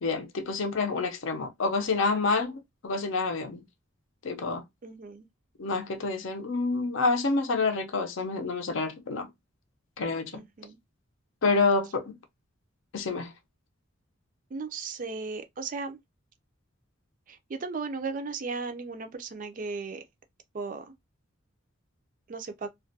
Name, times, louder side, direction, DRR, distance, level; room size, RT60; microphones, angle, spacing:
voice 1, 0.0-3.6 4.2-4.6 5.6-9.3 10.0-10.4 11.4-12.2 12.9-13.3, left 3 dB, 65° left, 0.5 m, -28 dB
voice 2, 4.8-5.3 10.3-10.8 14.5-16.0 17.3-20.0 20.5-20.9 22.3-22.7, right 4 dB, 40° right, 0.3 m, -36 dB
2.3 x 2.1 x 2.6 m
head